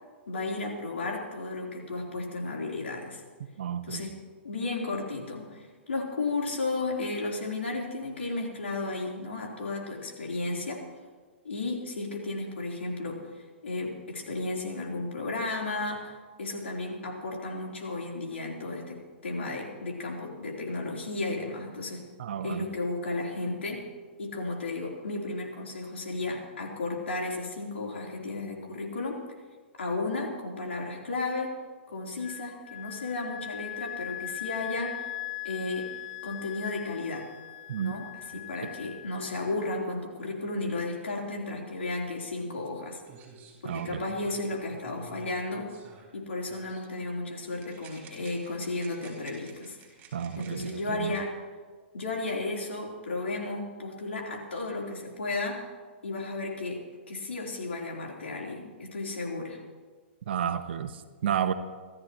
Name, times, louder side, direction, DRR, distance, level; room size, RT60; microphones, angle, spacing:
voice 1, 0.3-3.2 3.8-4.2 4.4-10.8 11.4-13.2 13.6-16.1 16.4-22.0 22.4-23.8 24.2-29.2 29.8-31.5 31.9-35.0 35.4-35.9 36.2-37.3 37.8-43.0 43.6-45.7 46.1-49.8 50.4-51.4 51.9-55.7 56.0-59.6, left 2 dB, 80° left, -1 dB, 3.9 m, -34 dB
voice 2, 3.6-4.1 22.2-22.7 37.7-37.9 43.6-44.1 50.1-51.1 60.3-61.5, right 9 dB, 60° right, 9 dB, 1.2 m, -31 dB
Wind instrument woodwind instrument, 32.2-39.6, left 15 dB, 45° left, 0.6 m, -40 dB
sound 1, 42.7-42.8 43.0-46.2 46.5-46.9 47.6-50.7, right 5 dB, 30° right, 5.3 m, -52 dB
27.5 x 13.5 x 3.1 m, 1.5 s
hypercardioid pair, 120°, 6 cm